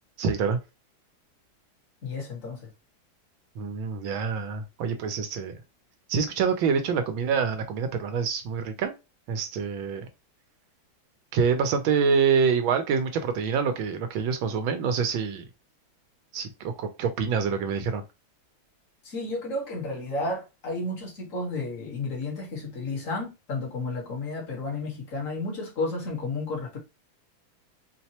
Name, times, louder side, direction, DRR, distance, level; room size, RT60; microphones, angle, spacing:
voice 1, 0.2-0.6 3.6-5.6 6.1-8.9 9.3-10.1 11.3-15.5 16.3-18.0, right 6 dB, 80° right, 1.5 m, -26 dB
voice 2, 2.0-2.7 19.0-26.8, left 2 dB, 45° left, 1.5 m, -32 dB
4.6 x 2.1 x 2.8 m
omnidirectional pair, 2.2 m